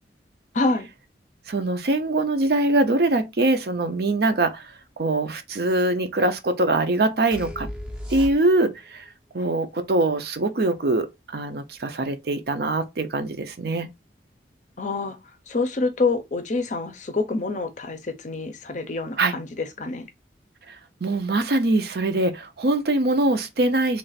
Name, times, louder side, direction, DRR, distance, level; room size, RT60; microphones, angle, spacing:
voice 1, 0.5-0.9 14.8-15.2 15.5-20.1, left 3 dB, 40° left, 0.5 m, -26 dB
voice 2, 1.5-4.7 5.0-7.7 8.1-9.0 9.3-13.9 19.2-19.3 20.7-20.8 21.0-24.0, right 2 dB, 55° right, 0.5 m, -23 dB
sound 1, 7.3-8.8, left 1 dB, 5° right, 0.5 m, -35 dB
3.2 x 2.5 x 3.9 m
head